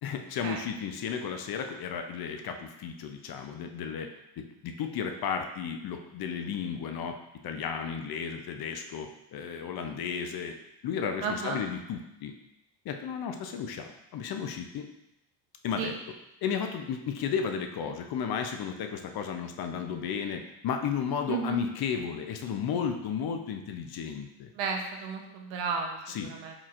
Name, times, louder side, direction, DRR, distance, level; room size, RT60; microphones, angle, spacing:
voice 1, 0.0-4.1 4.4-7.2 7.4-10.6 10.8-12.3 12.8-14.9 15.6-15.9 16.4-24.5 26.1-26.3, left 7 dB, 50° left, 5 dB, 0.7 m, -33 dB
voice 2, 11.2-11.6 15.8-15.9 21.3-21.6 24.5-26.5, right 5 dB, 70° right, 3 dB, 0.9 m, -33 dB
4.5 x 4.1 x 2.5 m, 0.86 s
supercardioid pair, 75°, 47 cm